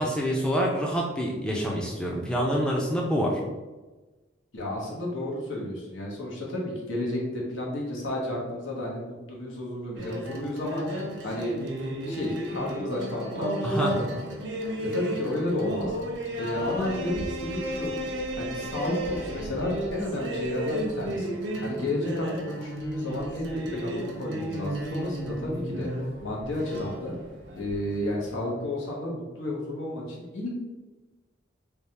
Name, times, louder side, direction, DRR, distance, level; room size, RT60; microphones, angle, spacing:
voice 1, 0.0-3.4 13.6-14.0, equal, 5° left, -2 dB, 0.4 m, -26 dB
voice 2, 4.5-10.8 11.2-11.5 12.0-14.4 14.8-15.9 16.3-17.9 18.4-21.4 21.6-25.9 26.2-27.1 27.6-30.5, left 1 dB, 90° left, -2 dB, 1.0 m, -32 dB
sound 1, 10.0-28.3, right 1 dB, 70° right, 0.7 m, -33 dB
3.4 x 2.3 x 4.1 m, 1.2 s
head